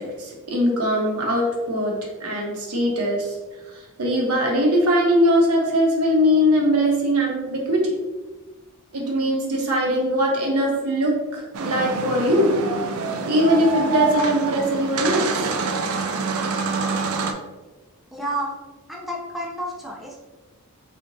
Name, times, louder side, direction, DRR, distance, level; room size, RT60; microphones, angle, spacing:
voice 1, 0.0-3.4 3.7-7.9 8.9-12.5 13.3-15.3, equal, 80° right, -1 dB, 1.0 m, -21 dB
sound 1, 11.5-17.3, right 4 dB, 65° right, 0.4 m, -26 dB
voice 2, 18.1-18.5 18.9-20.2, right 1 dB, ahead, -3 dB, 0.4 m, -30 dB
3.7 x 3.6 x 2.6 m, 1.2 s
head